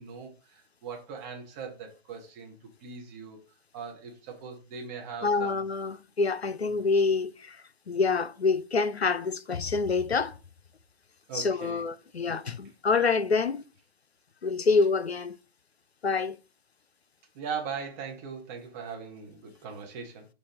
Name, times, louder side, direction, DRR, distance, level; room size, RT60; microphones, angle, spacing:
voice 1, 0.0-2.5 2.8-3.4 3.7-5.6 6.6-6.8 11.3-11.8 17.3-20.3, right 6 dB, 15° right, 0.7 m, -40 dB
voice 2, 5.2-10.4 11.3-13.6 14.4-15.4 16.0-16.4, left 4 dB, 90° left, 0.5 m, -27 dB
4.2 x 2.5 x 4.8 m
figure-of-eight pair, 135°, 31 cm